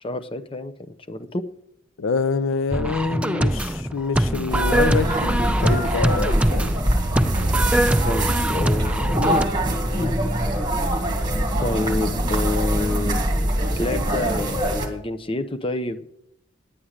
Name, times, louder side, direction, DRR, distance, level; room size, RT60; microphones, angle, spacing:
voice 1, 0.0-0.7 1.1-1.4 8.0-9.5 9.9-10.1 11.6-13.2 13.8-16.1, left 2 dB, 25° left, 11 dB, 0.7 m, -28 dB
voice 2, 2.0-6.8, left 4 dB, 80° left, 15 dB, 0.5 m, -26 dB
sound 1, 2.7-9.4, right 1 dB, 5° right, 0.4 m, -23 dB
sound 2, 4.5-14.9, right 1 dB, 20° right, 1.9 m, -23 dB
10.0 x 8.7 x 6.5 m, 0.77 s
head